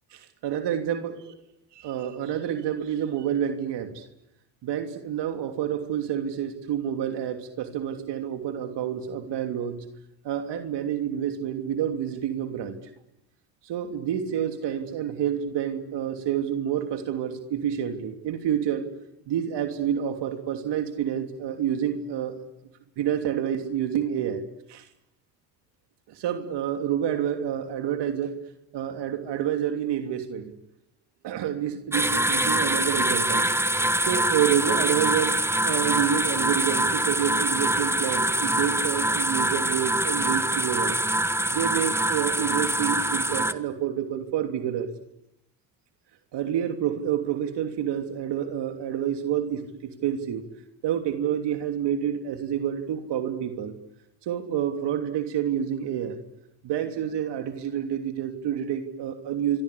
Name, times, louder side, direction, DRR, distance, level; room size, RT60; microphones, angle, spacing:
voice 1, 0.1-1.1 1.7-4.0 4.6-9.8 10.2-12.8 13.6-18.9 19.3-22.4 23.0-24.4 24.7-24.9 26.1-28.3 28.7-30.5 31.2-33.5 34.0-41.0 41.5-44.9 46.3-50.4 50.8-53.7 54.2-56.2 56.6-59.6, right 9 dB, 65° right, 6 dB, 3.1 m, -28 dB
sound 1, 31.9-43.5, right 1 dB, 5° right, 1.7 m, -24 dB
27.5 x 23.5 x 8.6 m, 0.86 s
hypercardioid pair, 70°, 45 cm